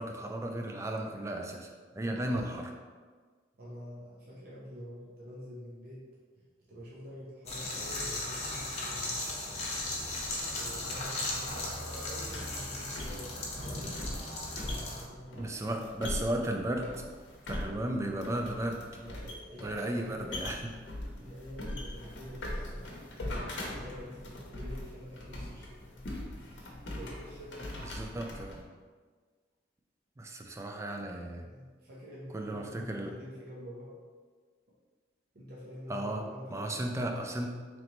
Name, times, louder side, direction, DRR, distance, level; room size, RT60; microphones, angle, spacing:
voice 1, 0.0-2.8 15.4-17.0 17.5-18.8 19.6-20.7 27.7-28.6 30.2-31.5 32.3-33.1 35.9-36.2 36.5-37.6, right 1 dB, 15° right, 2 dB, 0.3 m, -35 dB
voice 2, 1.9-2.3 3.6-6.1 6.4-9.5 10.6-14.2 14.5-15.6 18.1-18.6 18.9-20.4 21.2-25.9 26.5-27.9 31.5-33.9 35.3-36.9, equal, 55° right, -6 dB, 0.7 m, -47 dB
sound 1, 7.5-15.0, left 2 dB, 35° left, 0.8 m, -37 dB
sound 2, 9.6-28.6, left 1 dB, 75° left, 0.8 m, -42 dB
3.8 x 3.2 x 3.0 m, 1.5 s
head